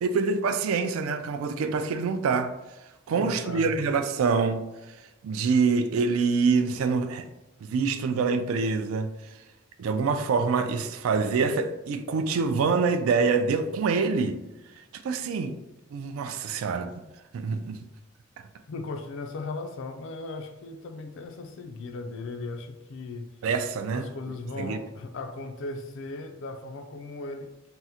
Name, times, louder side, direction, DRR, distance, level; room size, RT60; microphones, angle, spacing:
voice 1, 0.0-2.5 3.1-5.0 5.2-7.3 7.6-9.1 9.8-14.4 15.0-15.5 15.9-16.9 17.3-17.8 23.4-24.1 24.6-24.8, right 4 dB, 85° right, 0.3 m, -25 dB
voice 2, 3.1-3.8 18.7-23.3 23.9-27.5, left 3 dB, 65° left, 0.4 m, -37 dB
3.6 x 2.0 x 2.8 m
head